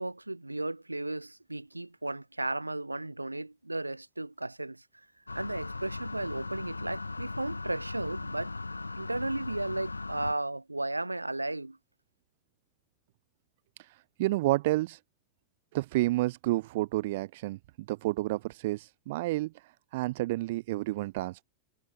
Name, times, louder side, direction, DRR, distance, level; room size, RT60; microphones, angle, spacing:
voice 1, 0.0-4.8 5.3-8.5 9.0-11.8, right 2 dB, 85° right, 7.0 m, -35 dB
sound 1, 5.3-10.3, left 3 dB, 80° left, 4.0 m, -38 dB
voice 2, 13.8-15.0 15.7-21.4, right 18 dB, 50° right, 1.6 m, -30 dB
figure-of-eight pair, 90°, 0 cm